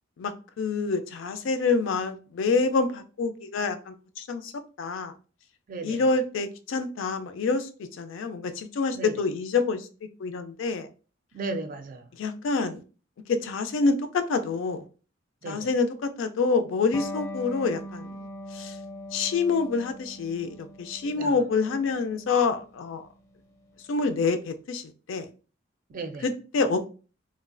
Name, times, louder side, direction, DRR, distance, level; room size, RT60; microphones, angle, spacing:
voice 1, 0.2-4.5 4.8-5.1 5.8-7.7 8.0-9.9 10.2-10.9 12.2-12.8 13.3-14.9 15.5-18.1 18.5-18.8 19.1-23.0 23.9-25.3 26.2-26.9, left 4 dB, 70° left, 0.4 m, -27 dB
voice 2, 5.7-6.1 8.9-9.1 11.3-12.1 15.4-15.7 21.1-21.4 25.9-26.3, right 3 dB, 45° right, 0.3 m, -35 dB
Electric guitar, 16.9-24.1, left 1 dB, 15° left, 0.5 m, -41 dB
3.0 x 2.2 x 2.4 m
head